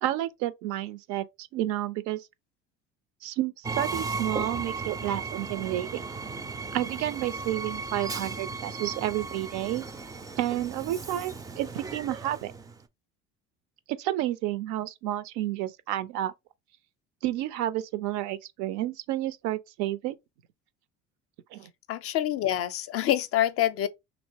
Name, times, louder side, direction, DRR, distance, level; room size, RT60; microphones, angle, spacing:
voice 1, 0.0-2.3 3.2-6.0 6.7-9.8 10.4-12.5 13.9-16.3 17.2-20.2 21.5-21.7, right 13 dB, 70° right, 0.5 m, -30 dB
Train, 3.6-12.8, right 4 dB, 10° right, 0.3 m, -36 dB
voice 2, 21.9-23.9, left 12 dB, 50° left, 0.4 m, -26 dB
3.1 x 2.8 x 2.7 m
supercardioid pair, 80°, 31 cm